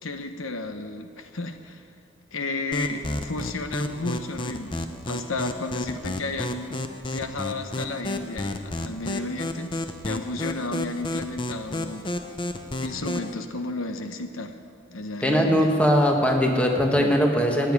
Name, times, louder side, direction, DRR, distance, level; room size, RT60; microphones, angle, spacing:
voice 1, 0.0-1.8 2.3-6.8 7.1-12.1 12.8-14.6 14.9-15.7 17.0-17.2, left 2 dB, 85° left, 7 dB, 1.0 m, -33 dB
sound 1, 2.7-13.3, left 1 dB, 25° left, 0.7 m, -32 dB
voice 2, 15.2-17.7, equal, 5° left, 1 dB, 1.5 m, -20 dB
14.5 x 9.1 x 9.7 m, 2.3 s
head